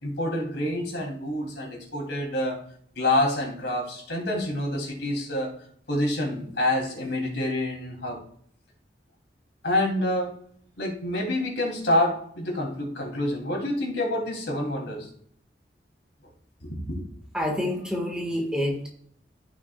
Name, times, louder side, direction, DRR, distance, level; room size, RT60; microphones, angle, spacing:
voice 1, 0.0-2.6 3.0-5.6 5.9-8.2 9.6-10.3 10.8-15.1 16.6-17.0, left 1 dB, 80° left, -1 dB, 2.9 m, -27 dB
voice 2, 17.3-18.9, left 1 dB, 5° right, 0 dB, 1.5 m, -27 dB
14.5 x 6.0 x 2.3 m, 0.64 s
head